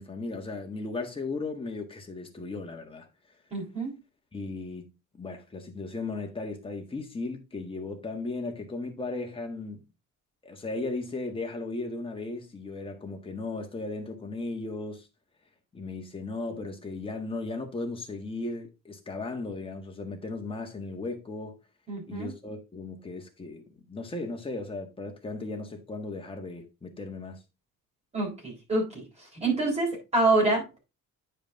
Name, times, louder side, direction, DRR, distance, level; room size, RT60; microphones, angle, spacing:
voice 1, 0.0-3.1 4.3-9.8 10.4-15.1 15.7-21.6 22.1-27.4, left 3 dB, 15° left, 1.6 m, -36 dB
voice 2, 3.5-3.9 21.9-22.3 28.1-29.0 29.3-30.8, right 2 dB, 20° right, 4.2 m, -26 dB
9.3 x 5.1 x 3.6 m
cardioid pair, 150°, 31 cm